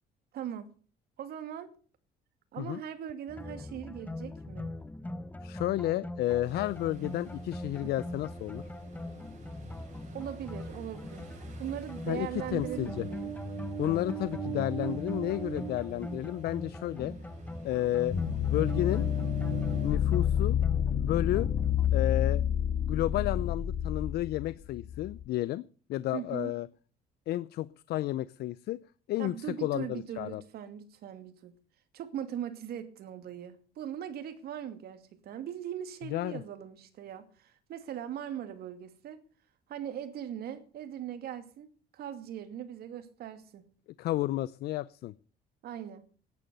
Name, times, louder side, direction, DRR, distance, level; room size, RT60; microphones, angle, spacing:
voice 1, 0.3-0.7 1.2-1.7 2.5-4.7 7.8-7.9 10.1-11.3 11.6-13.3 26.1-26.5 29.2-31.5 31.9-39.2 39.7-41.7 41.9-43.7 45.6-46.0, right 10 dB, 65° right, 2.6 m, -40 dB
sound 1, 3.3-21.9, left 2 dB, 10° left, 0.8 m, -41 dB
voice 2, 5.4-8.7 12.1-13.1 13.8-17.2 17.6-18.2 18.5-19.1 19.8-20.6 20.9-21.5 21.9-22.4 22.9-26.7 27.3-28.8 29.1-29.4 29.6-30.4 36.1-36.4 44.0-45.1, left 15 dB, 70° left, 0.6 m, -32 dB
Ocean, 6.4-20.0, right 10 dB, 45° right, 6.7 m, -43 dB
sound 2, 18.1-25.2, left 9 dB, 45° left, 1.7 m, -29 dB
14.5 x 11.0 x 6.9 m
cardioid pair, 110°, 17 cm